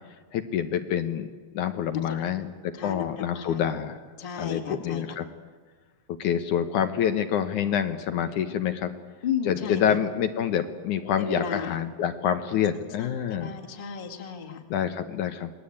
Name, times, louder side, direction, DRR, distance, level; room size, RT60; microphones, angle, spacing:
voice 1, 0.3-1.3 1.5-4.0 4.4-5.3 6.2-8.9 9.5-13.5 14.7-15.5, left 9 dB, 70° left, 7 dB, 2.4 m, -27 dB
voice 2, 2.7-3.6 4.2-5.0 9.2-10.0 11.2-11.8 13.0-14.6, left 7 dB, 20° left, 2 dB, 1.5 m, -34 dB
28.0 x 20.5 x 8.7 m, 1.5 s
omnidirectional pair, 3.9 m